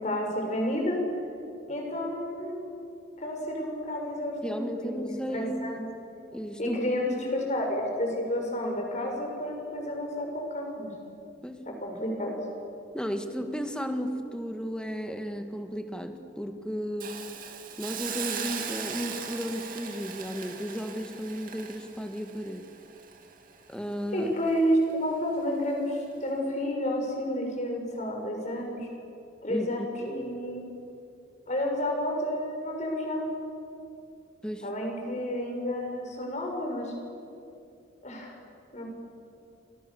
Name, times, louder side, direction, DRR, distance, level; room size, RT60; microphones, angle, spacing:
voice 1, 0.0-1.0 1.7-2.6 3.2-5.9 6.6-10.9 11.6-12.3 24.1-28.9 29.4-30.6 31.5-33.3 34.6-36.9 38.0-38.4 38.7-38.8, equal, 40° left, 1 dB, 6.2 m, -30 dB
voice 2, 4.4-5.8 6.3-6.8 7.2-7.5 11.4-11.6 11.9-12.0 12.9-17.2 17.8-22.7 23.7-24.3 29.5-29.9 34.4-34.7, equal, 5° left, 6 dB, 1.8 m, -34 dB
Hiss, 17.0-24.0 24.4-24.6, right 7 dB, 50° right, 2.4 m, -39 dB
30.0 x 25.5 x 7.2 m, 2.6 s
head